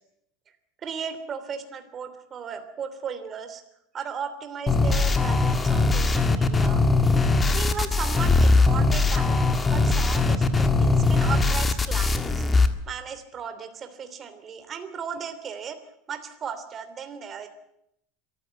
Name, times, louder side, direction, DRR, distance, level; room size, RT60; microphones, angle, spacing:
voice 1, 0.8-3.6 3.9-6.8 7.5-12.4 12.9-15.8 16.1-17.5, right 7 dB, 25° right, 8 dB, 3.1 m, -36 dB
sound 1, 4.7-12.7, left 3 dB, 15° left, 1.6 m, -21 dB
24.0 x 14.5 x 9.0 m, 0.76 s
cardioid pair, 155°, 0 cm